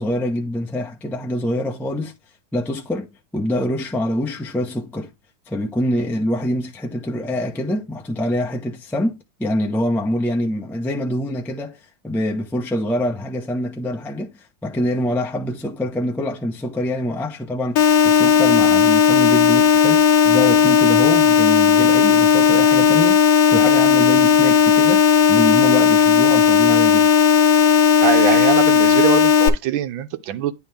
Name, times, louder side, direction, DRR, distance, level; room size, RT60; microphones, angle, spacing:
voice 1, 0.0-2.1 2.5-5.1 5.5-11.8 12.0-14.3 14.6-27.1, left 1 dB, 5° left, 0.3 m, -25 dB
sound 1, 17.8-29.5, left 7 dB, 80° left, 1.4 m, -14 dB
voice 2, 28.0-30.5, right 11 dB, 90° right, 1.5 m, -22 dB
9.6 x 3.3 x 3.4 m
omnidirectional pair, 2.1 m